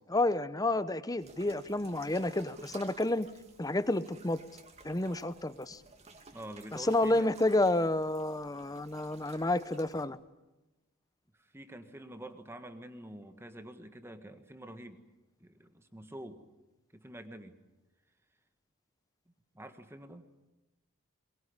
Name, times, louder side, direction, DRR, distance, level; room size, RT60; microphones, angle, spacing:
voice 1, 0.1-3.3 3.6-4.4 4.8-5.8 6.7-10.2, left 2 dB, 15° left, 15 dB, 0.8 m, -30 dB
sound 1, 1.2-10.0, right 4 dB, 30° right, 2.5 m, -55 dB
voice 2, 6.3-7.3 11.4-15.1 15.4-16.4 16.9-17.6 19.5-20.3, right 1 dB, 10° right, 8 dB, 1.5 m, -47 dB
22.5 x 22.0 x 9.8 m, 1.0 s
head